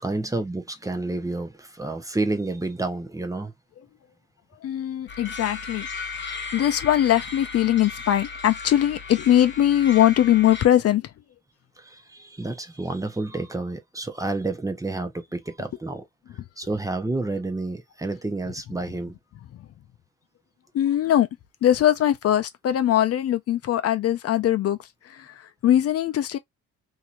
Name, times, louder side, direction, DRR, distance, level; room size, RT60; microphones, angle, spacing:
voice 1, 0.0-3.5 6.2-6.4 11.8-16.1 16.6-19.1, right 2 dB, 10° right, 0.6 m, -30 dB
voice 2, 4.6-11.1 20.7-21.3 21.6-24.8 25.0-26.4, left 11 dB, 55° left, 0.5 m, -21 dB
sound 1, 5.1-10.7, left 4 dB, 40° left, 1.1 m, -36 dB
3.0 x 2.7 x 2.4 m
cardioid pair, 90°, 30 cm